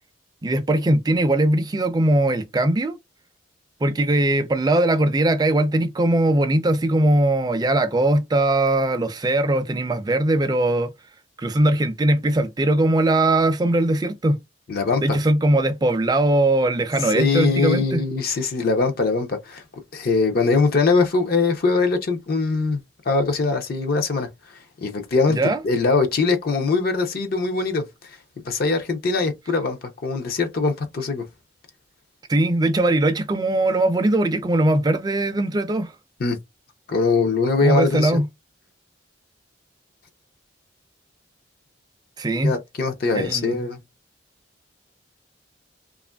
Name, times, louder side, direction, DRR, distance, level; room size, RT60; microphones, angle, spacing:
voice 1, 0.4-3.0 3.8-10.9 11.4-14.4 15.0-18.0 25.3-25.6 32.3-35.9 37.6-38.2 42.2-42.5 43.1-43.6, right 1 dB, 20° right, 0.4 m, -20 dB
voice 2, 14.7-15.2 17.1-19.6 19.9-22.8 23.1-24.3 24.8-28.2 28.5-31.2 36.2-36.4 36.9-38.2 42.4-43.8, left 4 dB, 50° left, 0.5 m, -22 dB
2.8 x 2.4 x 2.2 m
head